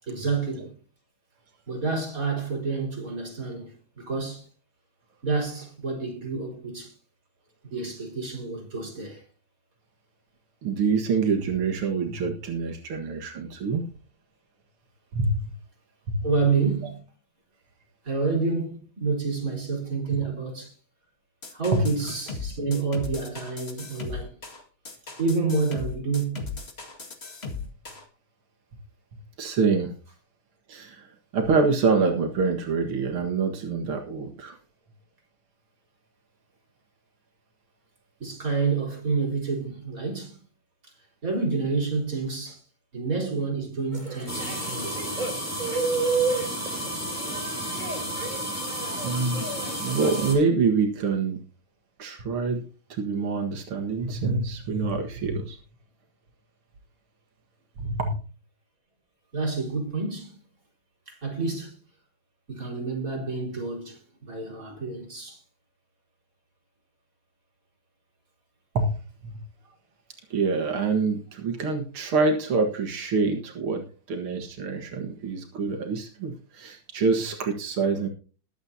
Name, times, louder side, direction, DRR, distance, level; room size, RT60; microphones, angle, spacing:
voice 1, 0.0-0.7 1.7-4.5 5.2-6.9 7.7-9.2 16.2-17.0 18.0-20.7 21.5-24.4 25.2-26.5 38.2-40.4 40.8-40.9 41.2-42.6 42.9-45.0 59.3-60.4 61.1-61.7 62.5-65.4, right 4 dB, 40° right, 4.8 m, -29 dB
voice 2, 10.6-13.8 15.1-15.5 16.1-16.3 16.8-16.9 21.7-21.8 29.4-29.9 30.7-31.1 31.3-34.6 49.0-49.5 49.8-51.4 52.0-52.6 52.9-55.6 57.8-58.1 68.7-68.9 69.2-69.4 70.3-78.1, right 4 dB, 85° right, 2.5 m, -26 dB
sound 1, 21.4-28.1, left 4 dB, 30° left, 2.2 m, -37 dB
sound 2, 43.9-50.4, right 4 dB, 20° right, 3.6 m, -32 dB
sound 3, 44.3-50.3, equal, 5° left, 4.2 m, -32 dB
21.0 x 8.3 x 2.8 m
omnidirectional pair, 2.3 m